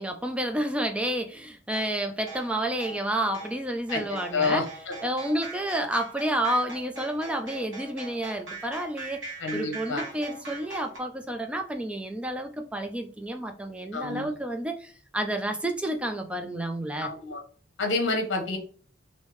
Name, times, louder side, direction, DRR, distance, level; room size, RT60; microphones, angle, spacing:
voice 1, 0.0-4.6 5.0-9.2 9.5-17.1, right 1 dB, 5° right, 0.3 m, -30 dB
sound 1, 1.7-11.0, right 3 dB, 80° right, 1.1 m, -41 dB
voice 2, 3.9-4.9 9.4-10.0 13.9-14.4 17.0-17.4 17.8-18.6, left 3 dB, 75° left, 0.8 m, -29 dB
3.4 x 2.7 x 3.1 m
head